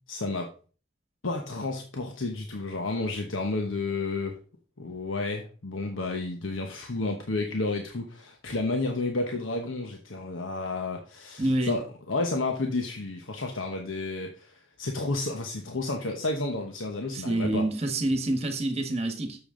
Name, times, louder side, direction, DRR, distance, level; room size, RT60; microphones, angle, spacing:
voice 1, 0.1-0.5 1.2-4.4 4.8-17.7, left 2 dB, 90° left, 1.1 m, -31 dB
voice 2, 11.4-11.8 17.1-19.4, right 1 dB, 30° right, 1.4 m, -27 dB
8.6 x 7.0 x 3.8 m
head